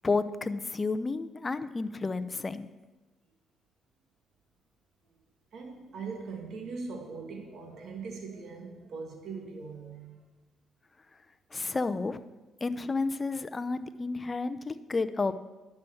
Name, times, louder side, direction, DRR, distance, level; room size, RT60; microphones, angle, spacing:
voice 1, 0.0-2.7 11.5-12.2 12.6-15.4, left 3 dB, 30° left, 13 dB, 0.7 m, -31 dB
voice 2, 5.5-10.2, right 4 dB, 65° right, 2 dB, 2.3 m, -41 dB
11.0 x 7.0 x 7.2 m, 1.1 s
cardioid pair, 90°, 0 cm